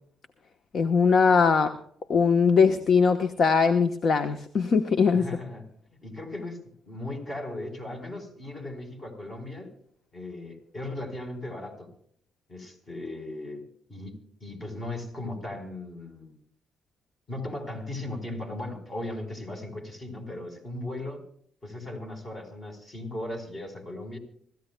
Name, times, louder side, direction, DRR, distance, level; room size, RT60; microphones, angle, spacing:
voice 1, 0.7-1.7 2.1-5.3, left 5 dB, 55° left, 9 dB, 1.0 m, -21 dB
voice 2, 5.1-6.6 6.9-9.7 10.1-11.9 12.5-16.3 17.3-21.2 21.6-24.2, left 1 dB, 35° left, 5 dB, 4.3 m, -37 dB
26.0 x 14.0 x 2.2 m, 0.64 s
cardioid pair, 90°, 0 cm